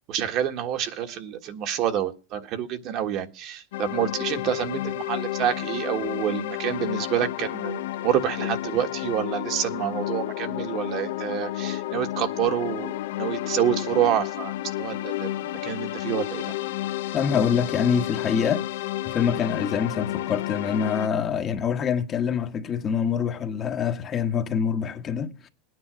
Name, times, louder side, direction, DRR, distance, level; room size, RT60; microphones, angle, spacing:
voice 1, 0.1-14.5 14.8-16.5, right 10 dB, 45° right, 1.6 m, -28 dB
sound 1, 3.7-21.1, left 15 dB, 85° left, 0.8 m, -31 dB
voice 2, 17.1-18.7 19.0-25.5, left 7 dB, 25° left, 1.2 m, -25 dB
19.0 x 9.8 x 6.2 m
supercardioid pair, 150°, 0 cm